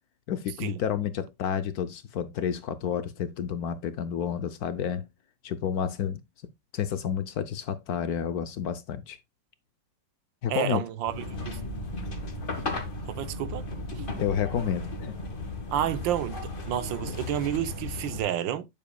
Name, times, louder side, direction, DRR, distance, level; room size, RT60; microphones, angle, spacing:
voice 1, 0.3-5.1 5.4-6.2 6.7-9.2 10.4-10.8 14.2-15.2, left 8 dB, 65° left, 1.0 m, -30 dB
voice 2, 10.5-11.6 13.1-13.6 14.0-14.1 15.7-18.7, right 11 dB, 80° right, 1.5 m, -30 dB
sound 1, 11.1-18.2, left 2 dB, 30° left, 1.5 m, -35 dB
8.7 x 7.2 x 2.2 m
omnidirectional pair, 2.0 m